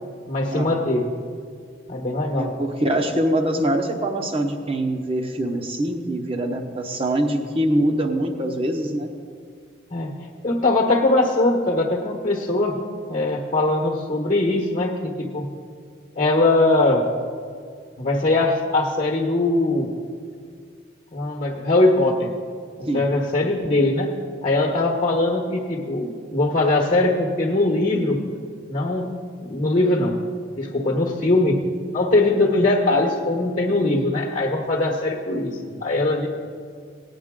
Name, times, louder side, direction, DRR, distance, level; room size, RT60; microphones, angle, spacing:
voice 1, 0.3-1.1 1.9-2.5 9.9-12.8 13.1-15.5 16.2-17.1 18.0-19.9 21.1-22.3 22.8-24.1 24.4-28.2 28.7-29.1 29.4-30.2 30.6-36.3, left 2 dB, 40° left, 0 dB, 1.1 m, -21 dB
voice 2, 2.3-9.1 22.9-23.1 35.7-35.8, right 1 dB, 30° right, 3 dB, 1.0 m, -24 dB
17.5 x 9.3 x 3.7 m, 2.1 s
head